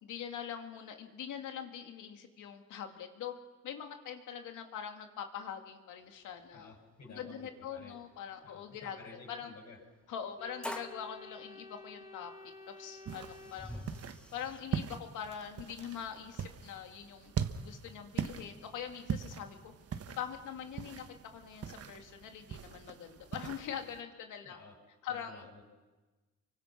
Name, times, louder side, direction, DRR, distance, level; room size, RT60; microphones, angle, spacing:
voice 1, 0.0-3.3 3.6-6.7 7.1-9.5 10.1-13.8 14.3-17.3 17.6-19.7 20.2-21.0 21.3-24.6 25.0-25.5, left 8 dB, 85° left, 5 dB, 2.4 m, -43 dB
sound 1, 6.4-6.5 6.7-6.8 7.6-7.7 9.7-9.8 10.6-11.0 12.3-12.4 12.8-14.6, left 1 dB, 5° left, 1.9 m, -44 dB
voice 2, 6.5-8.0 8.4-9.8 13.4-13.5 24.4-24.7 25.1-25.6, left 3 dB, 60° left, -2 dB, 7.7 m, -53 dB
Organ, 10.4-14.3, left 2 dB, 15° right, 4.4 m, -52 dB
sound 2, 13.0-24.0, right 7 dB, 50° right, 1.4 m, -41 dB
29.5 x 24.5 x 6.1 m, 1.2 s
cardioid pair, 90°, 30 cm